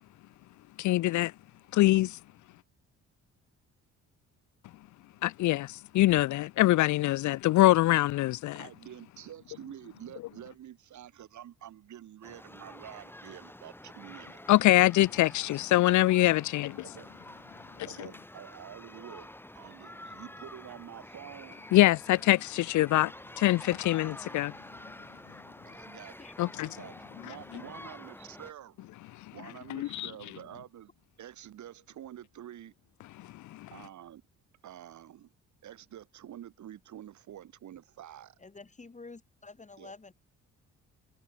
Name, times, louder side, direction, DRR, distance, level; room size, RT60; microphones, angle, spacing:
voice 1, 0.8-1.3 1.8-2.1 5.2-8.7 14.5-16.8 21.7-23.1 23.4-24.5 26.4-26.7 29.7-30.1 33.3-33.7, left 16 dB, 70° left, 0.5 m, -24 dB
voice 2, 8.6-14.4 16.8-17.1 17.8-19.3 19.5-21.6 25.6-26.3 26.6-28.9 29.3-30.9 31.2-32.7 33.7-34.2 34.6-35.3 35.6-38.4 39.8-39.9, right 11 dB, 70° right, 5.8 m, -48 dB
sound 1, 12.2-28.5, left 1 dB, 5° left, 5.4 m, -48 dB
voice 3, 38.4-40.1, left 3 dB, 25° left, 6.9 m, -49 dB
cardioid pair, 90°, 30 cm